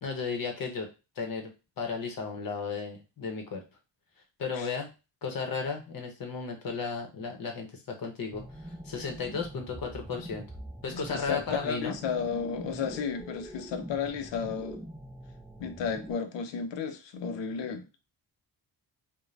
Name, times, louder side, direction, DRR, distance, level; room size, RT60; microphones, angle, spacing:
voice 1, 0.0-0.9 1.2-1.5 1.8-3.6 4.4-4.9 5.2-10.5 10.8-11.9, left 5 dB, 55° left, 0.8 m, -34 dB
sound 1, 8.3-16.1, equal, 5° right, 0.9 m, -44 dB
voice 2, 10.9-14.8 15.6-17.9, left 6 dB, 85° left, 0.6 m, -33 dB
2.5 x 2.1 x 3.1 m
cardioid pair, 120°, 42 cm